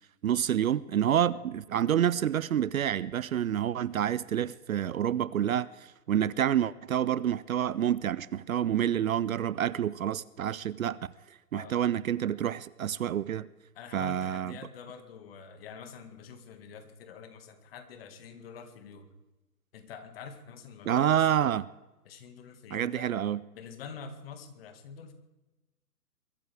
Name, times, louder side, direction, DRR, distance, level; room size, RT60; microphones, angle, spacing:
voice 1, 0.2-11.0 11.5-13.5 13.9-14.6 20.9-21.7 22.7-23.4, right 10 dB, 60° right, 0.6 m, -28 dB
voice 2, 11.5-11.9 13.7-19.1 19.7-21.3 22.1-23.1 23.5-25.1, left 6 dB, 35° left, 1.9 m, -46 dB
22.5 x 14.0 x 3.5 m
hypercardioid pair, 145°, 48 cm